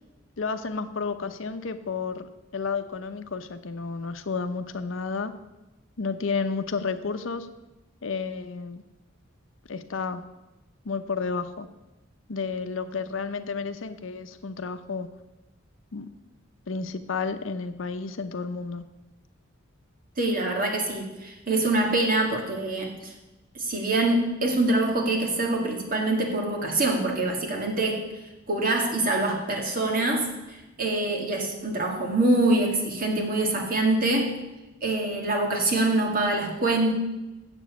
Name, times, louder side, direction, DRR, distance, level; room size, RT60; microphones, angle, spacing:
voice 1, 0.4-5.3 6.0-7.5 8.0-8.8 9.7-10.2 10.8-11.7 12.3-15.1 15.9-16.1 16.7-18.8, left 4 dB, 75° left, 10 dB, 0.7 m, -31 dB
voice 2, 20.2-23.1 23.5-28.0 28.5-34.4 34.8-36.9, right 2 dB, 45° right, 1 dB, 1.9 m, -25 dB
7.6 x 7.2 x 8.0 m, 1.0 s
head